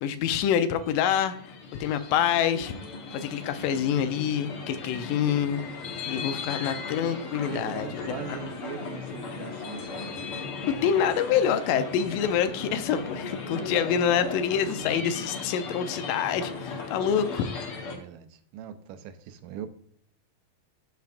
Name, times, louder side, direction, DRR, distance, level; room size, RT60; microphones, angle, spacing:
voice 1, 0.0-1.3 1.8-2.7 3.1-5.6 6.1-8.2 10.7-17.5, left 8 dB, 80° left, 10 dB, 2.2 m, -26 dB
sound 1, 0.7-18.0, left 4 dB, 55° left, 1.7 m, -37 dB
voice 2, 7.4-10.2 13.5-14.0 17.9-19.7, right 9 dB, 80° right, 9 dB, 2.3 m, -41 dB
14.0 x 4.6 x 2.5 m, 0.62 s
omnidirectional pair, 3.9 m